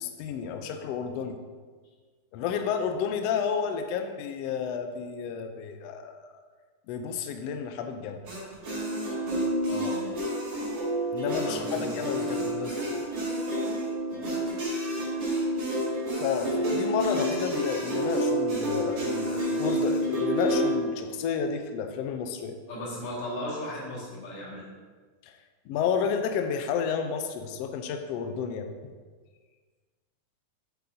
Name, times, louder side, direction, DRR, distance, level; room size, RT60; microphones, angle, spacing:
voice 1, 0.0-1.4 2.3-6.3 6.9-8.2 11.1-13.0 16.2-22.5 25.2-25.3 25.7-28.7, left 6 dB, 85° left, 6 dB, 1.4 m, -31 dB
sound 1, 8.3-20.7, equal, 45° right, 2.8 m, -29 dB
voice 2, 9.7-10.1 11.5-11.9 14.1-14.4 22.7-24.6, left 1 dB, 65° left, -5 dB, 3.1 m, -36 dB
8.2 x 7.8 x 2.6 m, 1.5 s
omnidirectional pair, 3.4 m